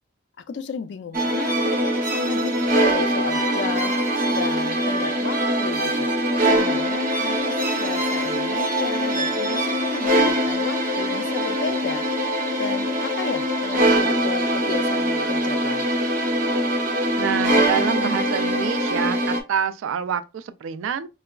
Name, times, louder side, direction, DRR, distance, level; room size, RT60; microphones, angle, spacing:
voice 1, 0.5-4.0 4.3-6.1 6.4-12.1 12.6-15.9, left 5 dB, 60° left, 0.3 m, -33 dB
sound 1, 1.1-19.4, right 1 dB, 45° right, 0.6 m, -22 dB
voice 2, 17.2-21.1, right 7 dB, 80° right, 0.3 m, -27 dB
4.6 x 2.2 x 2.2 m
head